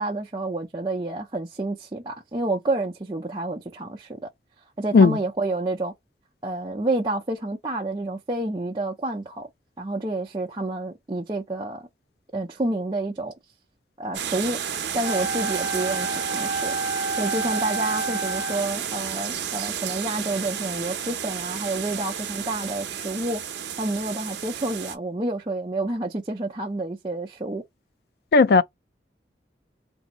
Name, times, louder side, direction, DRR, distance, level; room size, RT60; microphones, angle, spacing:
voice 1, 0.0-4.3 4.8-5.9 6.4-9.5 9.8-11.9 12.3-13.3 14.0-14.6 14.9-16.7 17.2-23.4 23.8-27.6, right 2 dB, 25° right, 0.5 m, -29 dB
sound 1, 14.1-25.0, right 8 dB, 75° right, 0.6 m, -32 dB
Wind instrument woodwind instrument, 15.0-18.8, right 2 dB, 5° right, 1.0 m, -29 dB
voice 2, 28.3-28.6, left 4 dB, 60° left, 0.3 m, -14 dB
2.7 x 2.4 x 4.0 m
head